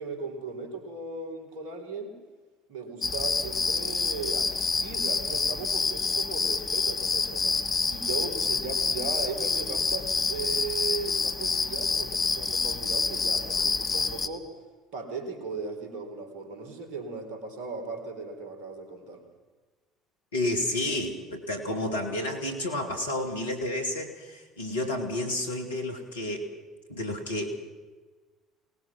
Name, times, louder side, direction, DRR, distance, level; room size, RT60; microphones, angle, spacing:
voice 1, 0.0-2.1 2.7-14.5 14.9-19.2, right 4 dB, 60° right, 5 dB, 4.0 m, -37 dB
sound 1, 3.0-14.3, left 4 dB, 30° left, 1.6 m, -28 dB
voice 2, 20.3-26.5 26.9-27.7, left 1 dB, 80° left, 5 dB, 2.7 m, -31 dB
23.5 x 19.5 x 6.2 m, 1.3 s
figure-of-eight pair, 60°, 0 cm